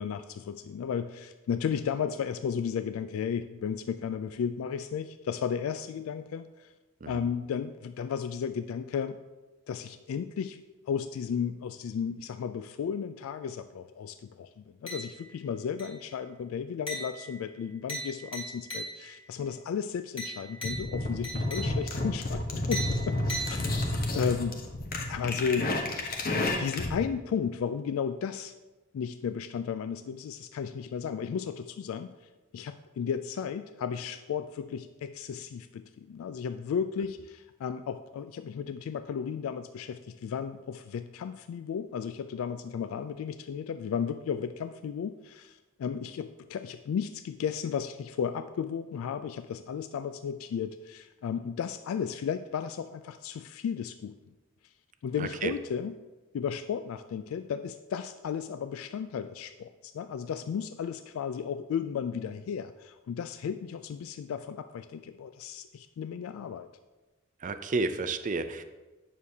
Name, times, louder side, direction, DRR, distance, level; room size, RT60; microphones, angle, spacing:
voice 1, 0.0-6.7 7.1-9.2 9.7-10.6 10.9-23.2 23.5-23.9 24.1-24.6 25.1-25.7 26.6-28.5 28.9-32.1 32.5-54.2 55.0-55.9 56.3-66.7, left 7 dB, 80° left, 10 dB, 0.3 m, -34 dB
sound 1, 14.9-15.4 15.8-16.2 16.9-19.3 20.2-22.1 22.7-24.1, right 1 dB, 25° left, 1.8 m, -39 dB
sound 2, 20.6-27.0, left 1 dB, 45° left, 0.9 m, -31 dB
voice 2, 55.2-55.5 67.4-68.6, right 3 dB, 40° right, 10 dB, 0.4 m, -31 dB
9.1 x 6.4 x 2.8 m, 1.1 s
head